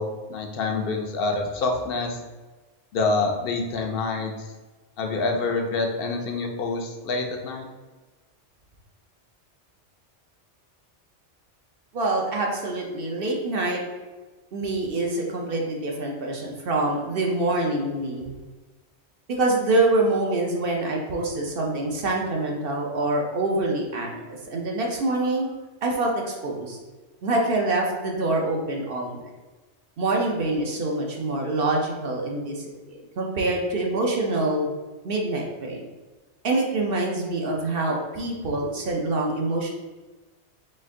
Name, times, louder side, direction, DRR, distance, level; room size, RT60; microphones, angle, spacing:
voice 1, 0.0-2.2 2.9-4.3 5.0-7.7, left 3 dB, 60° left, 3 dB, 0.7 m, -26 dB
voice 2, 11.9-13.8 14.5-18.3 19.4-25.5 25.8-26.8 27.2-29.2 30.0-34.7 35.0-35.9 36.4-39.7, right 2 dB, 55° right, 0 dB, 0.8 m, -25 dB
4.3 x 2.5 x 3.6 m, 1.2 s
omnidirectional pair, 1.2 m